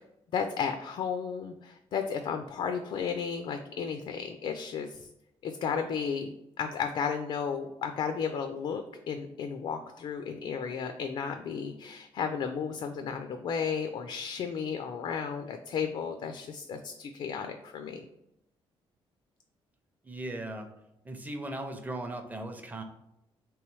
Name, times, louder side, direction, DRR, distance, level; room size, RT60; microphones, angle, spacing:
voice 1, 0.3-5.0 5.4-18.1, left 6 dB, 55° left, 7 dB, 0.4 m, -33 dB
voice 2, 20.0-20.7 21.0-22.8, right 1 dB, 15° right, 5 dB, 0.5 m, -38 dB
3.2 x 3.1 x 4.6 m, 0.84 s
cardioid pair, 140°, 10 cm